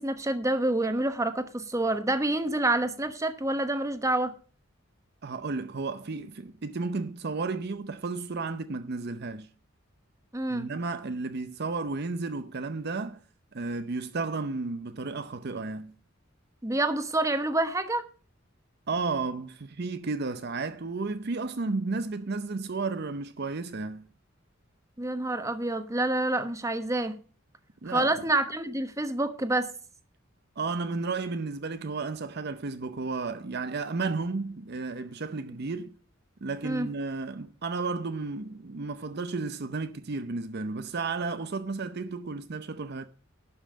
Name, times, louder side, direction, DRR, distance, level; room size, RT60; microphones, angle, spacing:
voice 1, 0.0-4.3 10.3-10.7 16.6-18.1 25.0-27.1 27.9-29.7 36.6-36.9, right 2 dB, 15° right, 1.1 m, -27 dB
voice 2, 5.2-9.5 10.5-13.2 13.5-15.9 18.9-24.1 27.8-28.1 30.6-36.0 36.4-43.0, right 3 dB, 55° right, 0.6 m, -33 dB
11.5 x 5.6 x 6.5 m
head